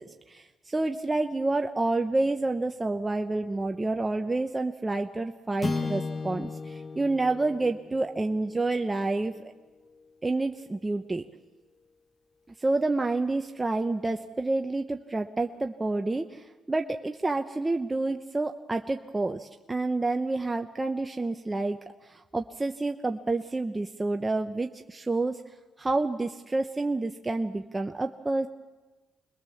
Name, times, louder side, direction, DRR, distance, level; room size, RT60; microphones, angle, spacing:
voice 1, 0.0-9.5 10.2-11.2 12.6-25.4 25.8-28.5, right 2 dB, 20° right, 5 dB, 0.9 m, -29 dB
sound 1, 5.6-10.1, left 3 dB, 35° left, 1.4 m, -36 dB
26.5 x 21.0 x 7.2 m, 1.3 s
cardioid pair, 90°, 0 cm